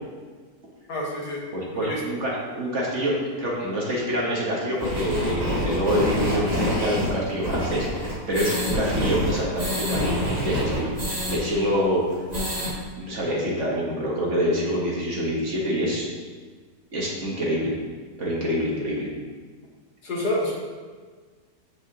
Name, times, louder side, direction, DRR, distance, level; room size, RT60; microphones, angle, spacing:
voice 1, 0.9-1.4 1.8-2.0 20.0-20.5, left 1 dB, 65° left, -3 dB, 1.9 m, -27 dB
voice 2, 1.5-10.0 10.4-10.9 11.3-12.0 12.5-12.6 13.0-16.1 16.9-17.7 18.2-19.1, equal, 45° right, -4 dB, 1.5 m, -26 dB
sound 1, 4.8-11.4 11.7-11.8 12.1-12.7, left 1 dB, 25° right, 1.7 m, -26 dB
7.7 x 6.8 x 2.9 m, 1.5 s
omnidirectional pair, 1.8 m